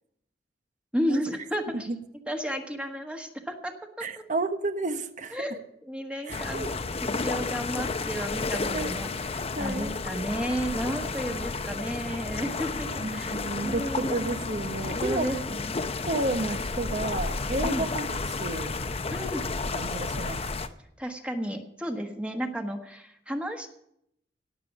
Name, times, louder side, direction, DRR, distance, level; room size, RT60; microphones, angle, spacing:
voice 1, 0.9-1.9 2.3-3.7 5.3-6.8 7.2-13.4 13.6-14.3 15.0-15.8 17.6-17.9 19.1-19.4 21.0-23.7, equal, 5° right, 4 dB, 1.3 m, -33 dB
voice 2, 4.0-5.4 6.3-6.7 8.7-9.0 9.6-9.9 13.0-15.4 16.1-18.7 19.7-20.5, right 2 dB, 45° right, 9 dB, 1.0 m, -31 dB
sound 1, 6.3-20.7, left 3 dB, 35° left, 0.7 m, -32 dB
18.0 x 6.8 x 7.1 m, 0.75 s
head